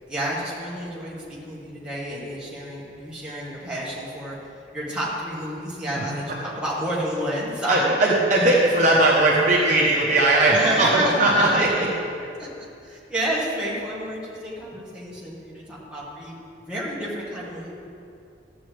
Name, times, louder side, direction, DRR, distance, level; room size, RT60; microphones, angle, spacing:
voice 1, 0.1-4.4 4.7-7.8 8.4-8.5 10.5-11.6 12.4-12.5 12.8-16.3 16.7-17.7, right 1 dB, 5° right, -7 dB, 1.6 m, -30 dB
voice 2, 7.7-11.9, right 2 dB, 40° right, -4 dB, 1.1 m, -19 dB
12.5 x 7.7 x 3.4 m, 2.5 s
head